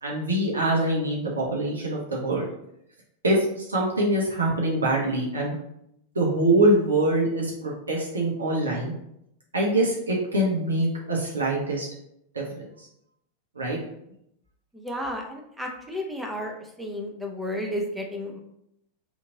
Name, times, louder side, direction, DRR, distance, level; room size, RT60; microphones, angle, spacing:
voice 1, 0.0-2.5 3.2-5.6 6.1-8.9 9.5-11.9 12.3-12.9 13.6-13.8, right 1 dB, 75° right, -3 dB, 0.7 m, -24 dB
voice 2, 14.8-16.5 16.8-18.4, left 1 dB, 5° right, 1 dB, 0.6 m, -32 dB
2.9 x 2.6 x 3.8 m, 0.78 s
figure-of-eight pair, 90°, 0 cm